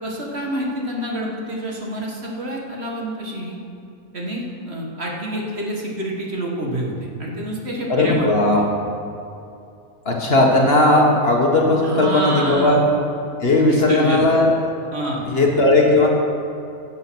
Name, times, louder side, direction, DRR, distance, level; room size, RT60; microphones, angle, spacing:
voice 1, 0.0-3.6 4.1-8.3 11.8-12.8 13.7-14.2 14.9-15.3, right 1 dB, 50° right, -2 dB, 1.9 m, -27 dB
voice 2, 7.9-8.6 10.1-12.8 13.4-14.5 15.3-16.1, left 2 dB, 45° left, -1 dB, 1.7 m, -16 dB
16.0 x 7.5 x 6.2 m, 2.6 s
omnidirectional pair, 1.5 m